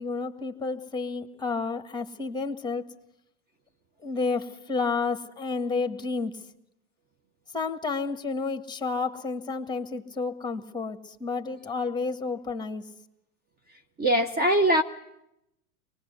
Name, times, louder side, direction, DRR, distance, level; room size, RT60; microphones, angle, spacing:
voice 1, 0.0-2.8 4.0-6.4 7.5-12.9, left 4 dB, 10° left, 1.6 m, -30 dB
voice 2, 14.0-14.8, right 1 dB, 20° right, 1.1 m, -21 dB
24.0 x 20.0 x 8.1 m
hypercardioid pair, 110°, 44 cm